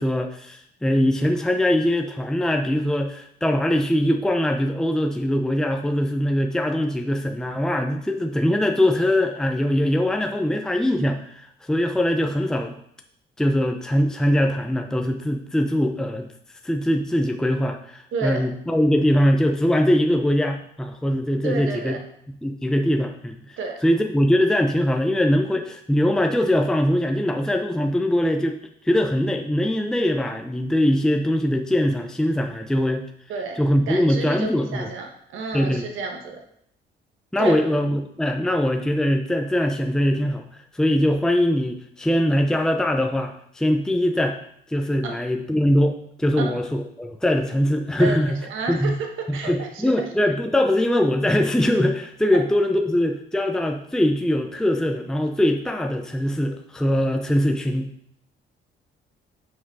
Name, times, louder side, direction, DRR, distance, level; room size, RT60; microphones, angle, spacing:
voice 1, 0.0-12.8 13.4-16.3 16.6-22.0 22.4-28.6 28.8-33.1 33.6-34.9 35.5-35.8 37.3-44.4 44.7-48.4 48.7-49.0 49.3-57.9, left 1 dB, 5° left, 4 dB, 0.6 m, -22 dB
voice 2, 18.1-18.4 21.4-22.0 23.6-23.8 33.3-33.6 33.9-36.4 37.4-37.6 45.0-45.2 46.4-46.5 48.0-48.2 48.5-49.9, right 4 dB, 85° right, 3 dB, 1.3 m, -30 dB
6.1 x 5.0 x 4.8 m, 0.70 s
cardioid pair, 90°, 20 cm